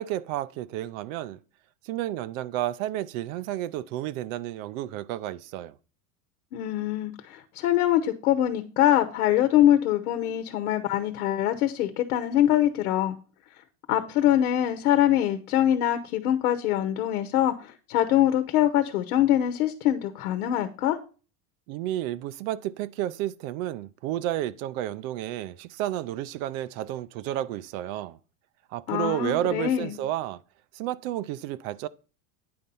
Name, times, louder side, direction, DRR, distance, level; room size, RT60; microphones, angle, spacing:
voice 1, 0.0-1.4 1.8-5.7 21.7-28.2 28.7-30.4 30.7-31.9, right 13 dB, 65° right, 0.7 m, -31 dB
voice 2, 6.5-13.2 13.9-21.0 28.9-30.0, left 12 dB, 90° left, 1.0 m, -24 dB
9.7 x 4.3 x 5.4 m
supercardioid pair, 140°, 43 cm